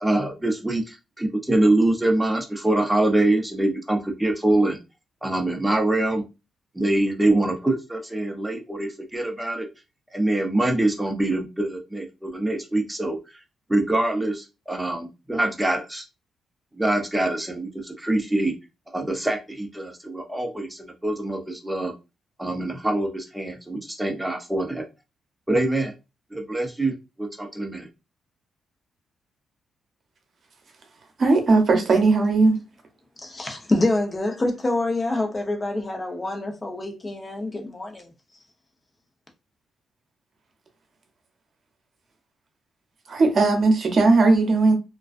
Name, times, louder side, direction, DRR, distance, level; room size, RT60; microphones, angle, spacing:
voice 1, 0.0-4.8 5.2-6.2 6.7-9.7 10.1-13.2 13.7-16.0 16.7-18.5 18.9-21.9 22.4-24.8 25.5-25.9 26.3-27.9, right 1 dB, 10° right, 0.6 m, -24 dB
voice 2, 31.2-32.6 35.1-35.2 43.1-44.7, right 3 dB, 55° right, 0.8 m, -18 dB
voice 3, 33.2-38.1, left 2 dB, 30° left, 0.8 m, -26 dB
2.4 x 2.2 x 2.5 m
cardioid pair, 70°, 0 cm